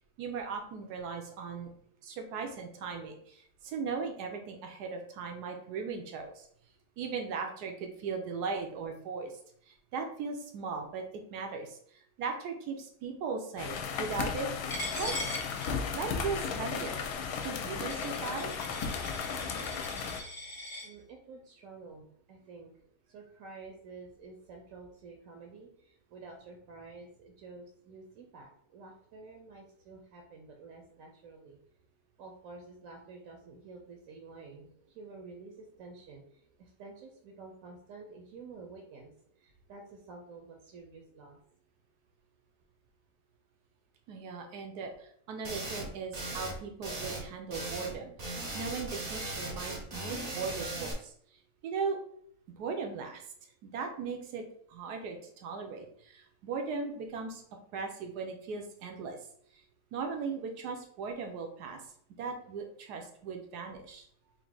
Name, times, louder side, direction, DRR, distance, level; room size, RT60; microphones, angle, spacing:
voice 1, 0.2-1.7 2.0-6.5 7.0-9.3 9.9-11.0 11.3-11.8 12.2-14.5 14.9-15.4 15.9-17.0 17.4-18.5 44.1-51.1 51.6-52.0 52.6-53.2 53.6-57.4 57.7-59.2 59.9-61.8 62.2-64.1, right 5 dB, 90° right, 3 dB, 1.3 m, -38 dB
sound 1, 13.6-20.2, left 6 dB, 75° left, 1.0 m, -35 dB
Coin (dropping), 14.7-20.9, left 1 dB, 25° left, 0.5 m, -41 dB
voice 2, 20.8-22.7 23.1-31.6 32.2-39.1 39.4-41.4 64.2-64.3, right 3 dB, 65° right, 2 dB, 1.0 m, -50 dB
sound 2, 45.4-45.9 46.1-46.6 46.8-47.2 47.5-47.9 48.2-50.9, right 2 dB, 40° right, 0.6 m, -38 dB
3.6 x 2.6 x 3.8 m, 0.64 s
omnidirectional pair, 1.7 m